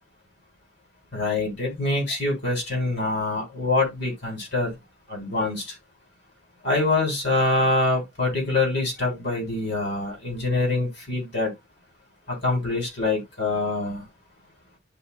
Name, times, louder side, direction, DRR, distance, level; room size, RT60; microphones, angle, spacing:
voice 1, 1.1-4.7 5.1-5.6 6.6-11.5 12.3-14.0, left 2 dB, 60° left, 3.8 m, -25 dB
11.5 x 4.1 x 2.4 m
head